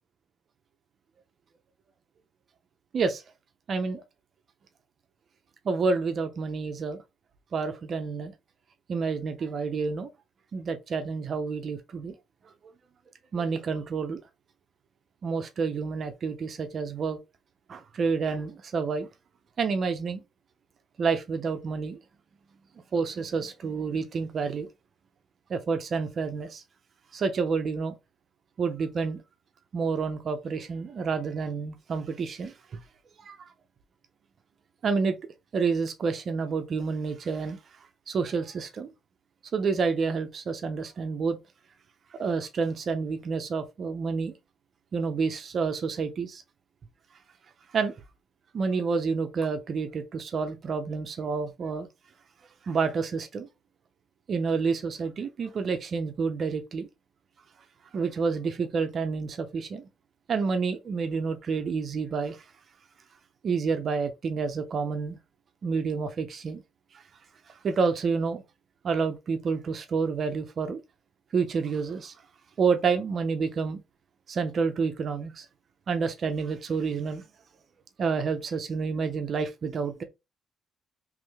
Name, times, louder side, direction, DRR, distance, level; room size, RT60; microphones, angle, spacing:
voice 1, 3.7-4.0 5.6-7.0 7.5-8.3 8.9-10.1 10.5-12.2 13.3-14.2 15.2-17.2 17.7-19.1 19.6-20.2 21.0-22.0 22.9-24.7 25.5-26.6 27.1-28.0 28.6-29.2 29.7-32.5 33.2-33.4 34.8-35.2 35.5-37.6 38.1-38.9 39.5-41.4 42.2-44.3 44.9-46.4 47.7-47.9 48.5-51.9 52.7-53.5 54.3-56.9 57.9-59.8 60.3-62.4 63.4-65.2 65.6-66.6 67.6-68.4 68.8-70.8 71.3-72.1 72.6-73.8 74.3-75.5 75.9-77.2 78.0-80.0, right 5 dB, 50° right, 0.6 m, -29 dB
3.6 x 3.1 x 3.3 m
cardioid pair, 115°, 0 cm